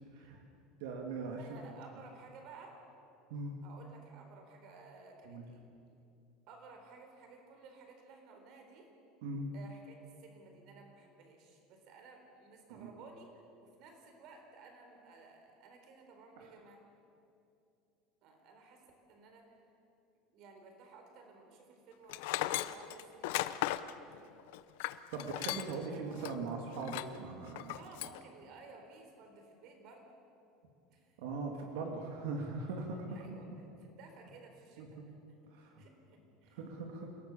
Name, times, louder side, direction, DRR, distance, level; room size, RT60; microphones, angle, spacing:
voice 1, 0.8-1.6 3.3-3.5 5.3-5.5 9.2-9.5 12.7-12.9 16.4-16.5 25.1-27.8 31.2-33.2 34.8-35.0 35.5-35.7 36.5-37.1, right 3 dB, 80° right, 1 dB, 2.7 m, -40 dB
voice 2, 1.4-2.8 3.6-5.6 6.5-8.9 9.5-13.3 13.6-16.8 18.2-18.8 19.1-19.6 20.3-23.6 25.9-26.3 27.7-30.1 30.9-31.2 33.1-33.5 33.8-34.8 35.4-36.6, right 4 dB, 45° right, 3 dB, 4.2 m, -56 dB
Tools, 22.1-25.9 26.2-26.3 26.8-27.2 27.6-28.2, left 16 dB, 75° left, 0.8 m, -36 dB
28.0 x 17.5 x 7.2 m, 2.7 s
cardioid pair, 175°, 0 cm